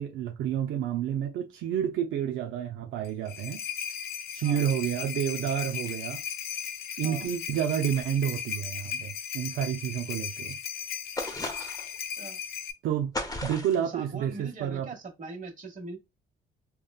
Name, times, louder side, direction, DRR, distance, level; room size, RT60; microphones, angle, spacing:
voice 1, 0.0-3.6 4.3-6.2 7.0-10.6 12.8-13.1 13.4-14.9, right 9 dB, 80° right, 0.6 m, -30 dB
sound 1, 3.0-12.7, left 8 dB, 55° left, 0.5 m, -37 dB
sound 2, 11.2-12.0 13.1-13.9, left 1 dB, 20° left, 0.8 m, -35 dB
voice 2, 13.8-16.0, right 3 dB, 40° right, 1.3 m, -41 dB
3.5 x 2.2 x 2.3 m
cardioid pair, 90°, 20 cm